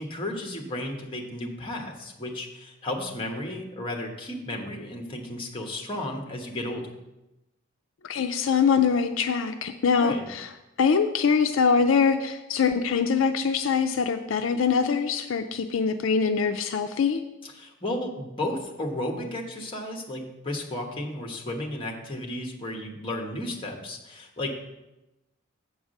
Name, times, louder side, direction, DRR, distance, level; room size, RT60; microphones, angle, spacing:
voice 1, 0.0-6.9 10.0-10.2 17.4-24.5, left 1 dB, 25° left, 2 dB, 1.1 m, -33 dB
voice 2, 8.0-10.5 10.8-17.2, left 5 dB, 70° left, 7 dB, 0.4 m, -23 dB
8.0 x 4.7 x 6.4 m, 0.97 s
head